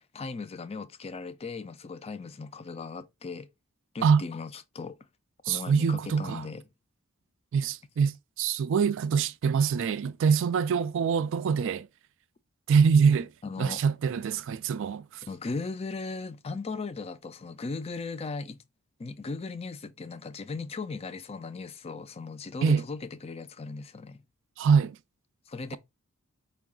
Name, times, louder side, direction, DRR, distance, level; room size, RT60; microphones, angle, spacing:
voice 1, 0.1-3.5 3.9-5.0 5.5-6.6 13.4-13.8 15.3-18.6 19.0-24.2 25.5-25.8, left 4 dB, 30° left, 0.4 m, -37 dB
voice 2, 5.4-6.5 7.5-11.9 12.7-13.3 13.6-15.2 22.6-22.8 24.6-25.0, right 6 dB, 60° right, 0.3 m, -24 dB
4.6 x 2.3 x 3.6 m
head